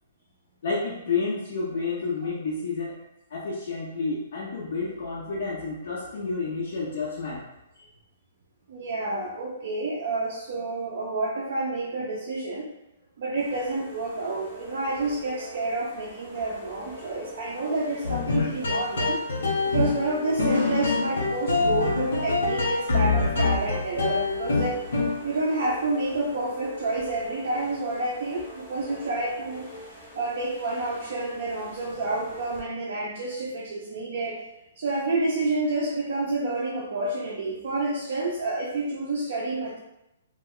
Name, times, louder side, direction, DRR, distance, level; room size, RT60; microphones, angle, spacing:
voice 1, 0.6-3.0 3.3-7.4 7.8-7.9, left 4 dB, 50° left, -4 dB, 0.4 m, -30 dB
voice 2, 8.7-12.7 13.2-19.2 19.6-24.8 25.2-29.7 30.1-34.4 34.8-39.8, right 2 dB, 50° right, -4 dB, 0.4 m, -29 dB
sound 1, 13.4-32.6, left 1 dB, 5° left, 0.6 m, -46 dB
sound 2, 18.0-25.3, left 3 dB, 75° left, 0.9 m, -25 dB
2.2 x 2.1 x 3.6 m, 0.88 s
hypercardioid pair, 175°, 0 cm